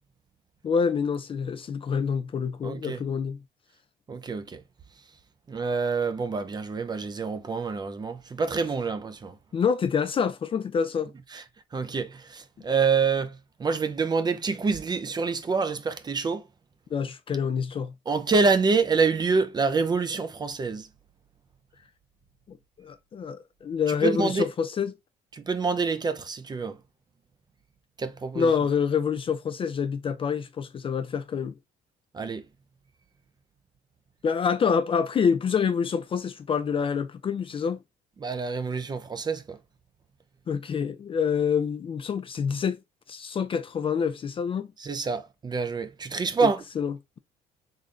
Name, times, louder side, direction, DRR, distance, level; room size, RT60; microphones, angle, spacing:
voice 1, 0.6-3.4 9.5-11.1 16.9-17.9 22.5-24.9 28.4-31.5 34.2-37.8 40.5-42.8 43.1-44.7 46.8-47.2, left 6 dB, 30° left, 0.4 m, -27 dB
voice 2, 2.6-3.0 4.1-4.6 5.5-9.4 11.3-11.4 11.7-16.5 18.1-20.9 23.9-24.5 25.3-26.8 28.0-28.5 32.1-32.4 38.2-39.6 44.8-46.6, right 4 dB, 25° right, 0.5 m, -27 dB
3.7 x 3.2 x 2.5 m
cardioid pair, 110°, 17 cm